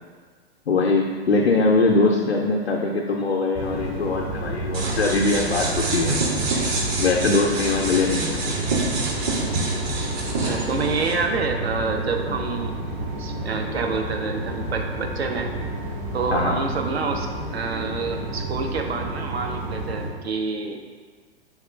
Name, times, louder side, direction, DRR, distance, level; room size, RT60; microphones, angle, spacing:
voice 1, 0.7-6.1 7.0-8.6 16.3-16.6, left 3 dB, 85° left, -1 dB, 0.5 m, -22 dB
sound 1, 3.5-20.1, right 2 dB, 10° right, 0.3 m, -30 dB
sound 2, 4.7-11.1, right 2 dB, 40° right, 0.7 m, -27 dB
voice 2, 10.3-12.8 13.1-15.5 16.1-17.3 17.5-20.8, right 4 dB, 80° right, 3 dB, 0.6 m, -27 dB
3.5 x 2.4 x 4.2 m, 1.5 s
figure-of-eight pair, 105°, 31 cm